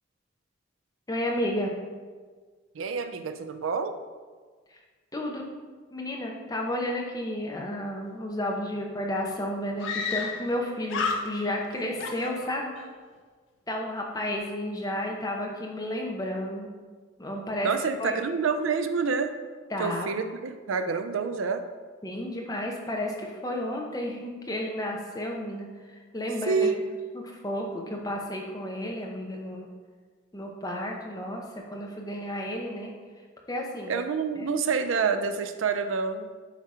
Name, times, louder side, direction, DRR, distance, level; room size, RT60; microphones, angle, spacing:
voice 1, 1.1-1.7 5.1-5.5 5.9-12.7 13.7-16.7 17.2-17.7 18.0-18.2 19.7-20.1 22.0-25.7 26.1-26.7 27.1-29.7 30.3-31.4 31.7-32.9 33.5-33.9 34.4-34.5, left 1 dB, 20° left, 0 dB, 0.8 m, -32 dB
voice 2, 2.7-3.9 17.6-19.3 19.8-21.6 26.5-26.8 33.9-36.3, right 5 dB, 90° right, 9 dB, 0.5 m, -27 dB
Screaming, 8.7-8.8 9.0-9.1 9.8-10.6 10.9-11.7 12.0-12.9, left 5 dB, 75° left, 0.6 m, -32 dB
8.2 x 2.9 x 4.8 m, 1.5 s
head